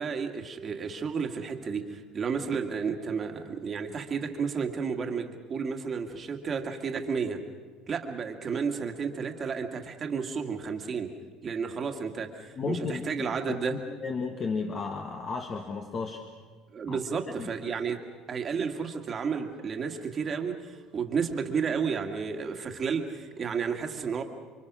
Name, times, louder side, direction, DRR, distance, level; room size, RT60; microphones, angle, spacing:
voice 1, 0.0-7.4 7.9-11.1 11.4-13.8 16.7-18.0 18.3-24.2, right 6 dB, 30° right, 4 dB, 2.1 m, -32 dB
voice 2, 12.5-13.1 13.4-16.3 16.9-17.0 17.4-17.5, left 4 dB, 30° left, 4 dB, 1.6 m, -33 dB
29.5 x 24.0 x 6.3 m, 1.5 s
cardioid pair, 140°, 0 cm